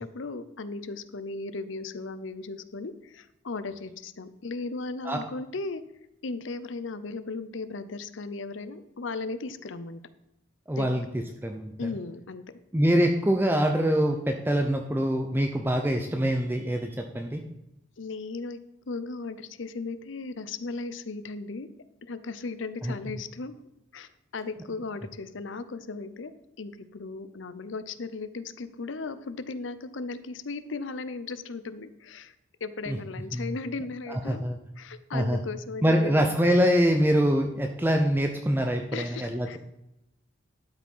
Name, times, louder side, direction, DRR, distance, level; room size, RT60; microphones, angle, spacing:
voice 1, 0.0-5.8 6.2-10.0 10.8-10.9 11.8-12.4 18.0-18.6 18.9-21.7 22.0-23.5 23.9-26.3 26.6-32.3 32.6-34.4 34.8-36.2 38.9-39.6, left 3 dB, 75° left, 13 dB, 0.7 m, -36 dB
voice 2, 10.7-11.0 11.4-11.9 12.7-17.4 22.8-22.9 32.9-33.0 33.3-33.5 34.1-34.6 35.1-35.4 35.8-39.6, equal, 10° right, 3 dB, 0.6 m, -24 dB
12.0 x 5.2 x 5.5 m, 0.88 s
head